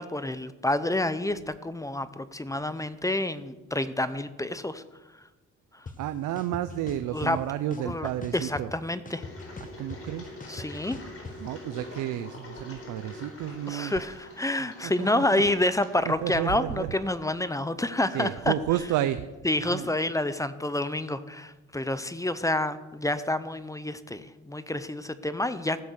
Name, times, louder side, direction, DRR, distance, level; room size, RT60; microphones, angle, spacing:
voice 1, 0.0-4.8 7.1-7.4 7.8-9.2 10.5-11.0 13.7-18.5 19.4-25.8, left 1 dB, 10° left, 13 dB, 0.7 m, -28 dB
sound 1, 5.9-6.0 6.4-7.3 7.7-8.8 9.1-11.3, left 4 dB, 25° left, 1.3 m, -41 dB
voice 2, 6.0-8.7 9.6-10.3 11.4-13.9 14.6-15.4 16.0-17.1 18.1-19.2 19.6-20.0, right 12 dB, 85° right, 12 dB, 0.6 m, -31 dB
Engine, 9.1-16.9, left 2 dB, 50° left, 4.3 m, -45 dB
15.5 x 7.5 x 6.3 m, 1.1 s
cardioid pair, 90°, 30 cm